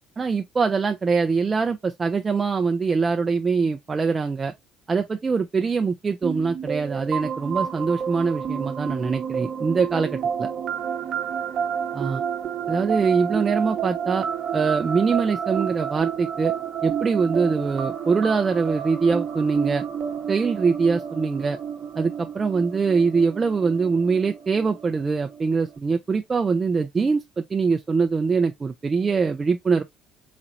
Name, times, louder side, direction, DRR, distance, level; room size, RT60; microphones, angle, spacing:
voice 1, 0.2-4.5 4.9-10.5 11.9-12.2 12.7-14.2 14.5-16.5 16.8-19.8 20.3-21.6 22.0-29.8, right 5 dB, 25° right, 0.4 m, -23 dB
sound 1, 6.2-25.8, right 8 dB, 50° right, 0.9 m, -30 dB
4.0 x 3.0 x 2.5 m
cardioid pair, 105°, 0 cm